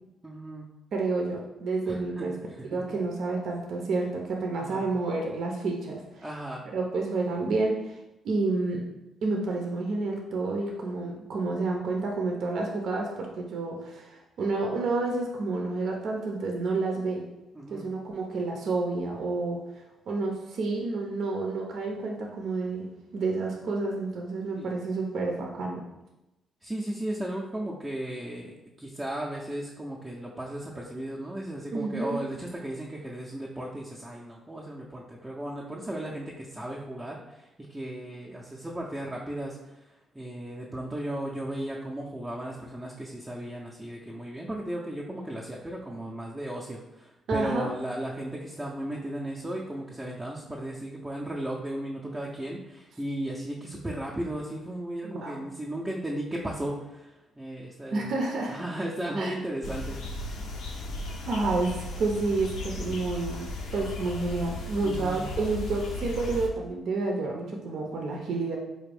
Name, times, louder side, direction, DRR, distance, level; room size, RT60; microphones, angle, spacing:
voice 1, 0.2-0.7 1.9-2.8 4.5-4.9 6.2-6.6 17.5-17.9 24.6-24.7 26.6-58.1 58.5-60.4 64.8-65.3, right 1 dB, 15° right, -4 dB, 0.5 m, -36 dB
voice 2, 0.9-2.3 2.7-6.2 6.7-8.0 8.2-8.8 9.2-17.2 17.7-19.6 20.1-22.9 23.1-25.8 31.7-32.2 47.3-47.7 55.0-55.3 57.9-58.6 59.2-59.3 61.3-68.6, right 3 dB, 65° right, 0 dB, 0.5 m, -29 dB
sound 1, 59.6-66.5, left 2 dB, 80° left, 0.6 m, -36 dB
4.0 x 2.5 x 3.3 m, 0.98 s
cardioid pair, 90°, 0 cm